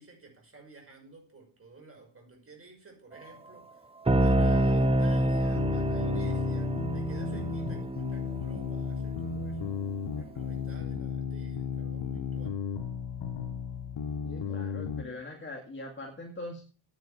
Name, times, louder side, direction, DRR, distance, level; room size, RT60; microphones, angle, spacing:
voice 1, 0.0-3.9 4.2-9.7 10.2-12.6, right 3 dB, 30° right, 2 dB, 5.8 m, -52 dB
sound 1, 4.1-9.7, equal, 15° right, 0.7 m, -27 dB
sound 2, 5.6-15.0, left 6 dB, 65° left, 1.6 m, -34 dB
voice 2, 14.2-16.6, left 2 dB, 25° left, 0 dB, 2.2 m, -41 dB
9.4 x 7.9 x 7.4 m, 0.39 s
cardioid pair, 110°, 46 cm